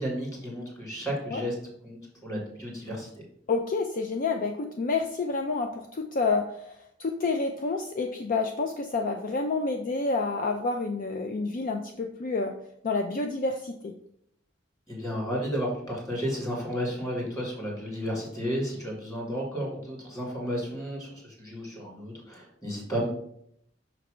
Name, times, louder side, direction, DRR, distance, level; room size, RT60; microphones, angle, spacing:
voice 1, 0.0-1.5 1.8-3.2 14.9-23.1, equal, 20° left, -1 dB, 2.1 m, -33 dB
voice 2, 3.5-12.5 12.8-13.9, left 3 dB, 45° left, 3 dB, 0.4 m, -29 dB
5.9 x 3.3 x 4.9 m, 0.71 s
head